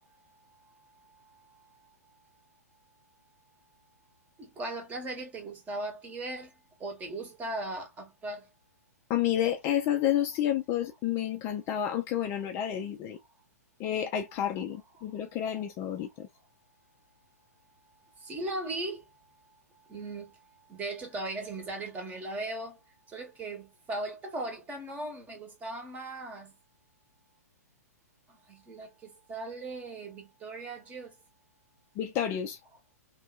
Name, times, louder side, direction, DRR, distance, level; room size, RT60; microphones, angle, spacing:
voice 1, 0.0-1.7 4.4-6.5 6.8-8.5 15.0-15.4 16.0-19.5 19.8-22.8 23.1-26.5 28.3-31.2, right 2 dB, 15° right, 1.0 m, -39 dB
voice 2, 9.1-13.2 13.8-16.3 32.0-32.6, left 10 dB, 25° left, 0.4 m, -30 dB
3.0 x 2.6 x 2.3 m
figure-of-eight pair, 115°, 9 cm